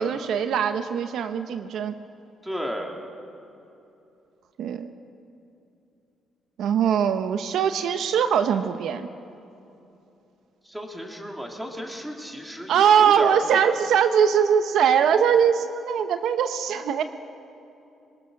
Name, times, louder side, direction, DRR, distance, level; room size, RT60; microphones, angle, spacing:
voice 1, 0.0-1.9 4.6-4.9 6.6-9.1 12.7-17.0, right 8 dB, 75° right, 9 dB, 0.8 m, -21 dB
voice 2, 2.4-3.0 10.6-13.7, equal, 5° right, 1 dB, 3.2 m, -33 dB
23.0 x 20.0 x 6.4 m, 2.8 s
cardioid pair, 90°, 0 cm